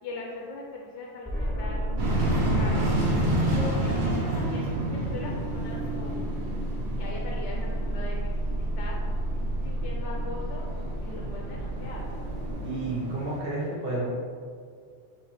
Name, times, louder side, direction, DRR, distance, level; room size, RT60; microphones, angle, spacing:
voice 1, 0.0-1.9 2.3-2.9 3.4-6.2 7.0-9.0 9.6-10.7 11.0-12.0, left 2 dB, 80° left, -2 dB, 0.9 m, -40 dB
sound 1, 1.2-12.5, right 1 dB, 10° right, 0.8 m, -32 dB
sound 2, 2.0-13.4, right 1 dB, 70° right, 1.0 m, -30 dB
voice 2, 12.6-14.1, right 2 dB, 55° right, -5 dB, 1.3 m, -31 dB
3.4 x 3.1 x 4.6 m, 2.1 s
omnidirectional pair, 1.2 m